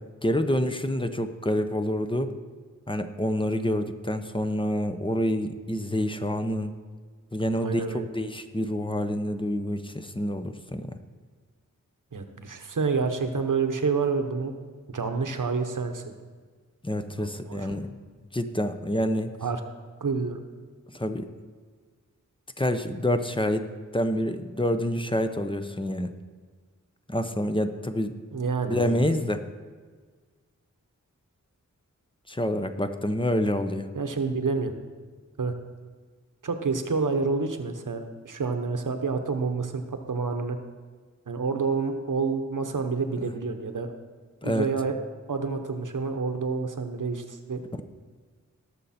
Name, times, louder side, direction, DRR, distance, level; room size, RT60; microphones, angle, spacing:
voice 1, 0.2-2.3 2.9-6.7 7.3-11.0 16.8-17.9 18.3-19.3 20.9-21.3 22.6-23.6 23.9-26.1 27.1-28.1 28.7-29.4 32.3-33.9 44.4-44.7, left 1 dB, 15° left, 8 dB, 0.9 m, -27 dB
voice 2, 7.5-8.0 12.1-14.5 14.9-16.1 17.2-17.7 19.4-19.6 20.0-20.4 28.3-29.1 33.9-34.7 35.4-35.5 36.4-40.6 41.3-43.9 44.4-44.9 45.3-47.6, right 4 dB, 75° right, 6 dB, 1.1 m, -28 dB
18.5 x 6.8 x 4.3 m, 1.5 s
wide cardioid pair, 50°, 32 cm